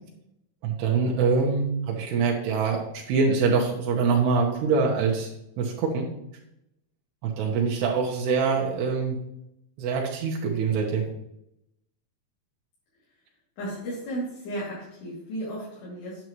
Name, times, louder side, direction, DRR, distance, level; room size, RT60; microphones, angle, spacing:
voice 1, 0.6-5.3 5.6-6.1 7.2-9.2 9.8-11.1, right 5 dB, 80° right, -1 dB, 3.2 m, -24 dB
voice 2, 13.6-16.2, right 1 dB, 80° left, -9 dB, 4.8 m, -34 dB
9.6 x 8.4 x 3.1 m, 0.82 s
omnidirectional pair, 4.7 m